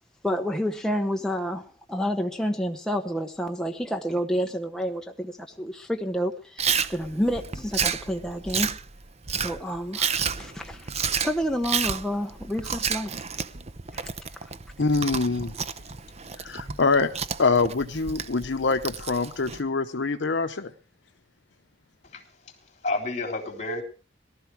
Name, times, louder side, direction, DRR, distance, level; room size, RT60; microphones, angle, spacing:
voice 1, 0.2-8.7 9.3-13.2 13.9-14.1 14.4-14.5, equal, 5° left, 0.9 m, -29 dB
Chewing mastication, 6.6-19.6, right 6 dB, 35° right, 0.8 m, -31 dB
voice 2, 14.8-15.5 16.4-20.7, left 4 dB, 70° left, 0.8 m, -25 dB
voice 3, 22.0-23.8, left 2 dB, 40° left, 3.5 m, -31 dB
18.5 x 13.0 x 4.6 m
head